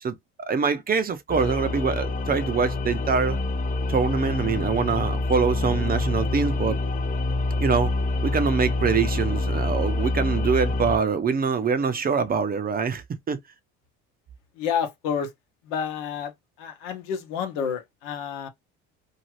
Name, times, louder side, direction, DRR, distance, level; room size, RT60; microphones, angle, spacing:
voice 1, 0.5-3.4 3.9-6.8 7.6-7.9 8.2-13.4, right 5 dB, 30° right, 0.6 m, -24 dB
sound 1, 1.3-11.0, left 2 dB, 25° left, 0.5 m, -26 dB
voice 2, 14.6-15.3 15.6-16.3 16.6-18.5, left 7 dB, 85° left, 1.0 m, -29 dB
2.8 x 2.3 x 3.0 m
supercardioid pair, 85°, 31 cm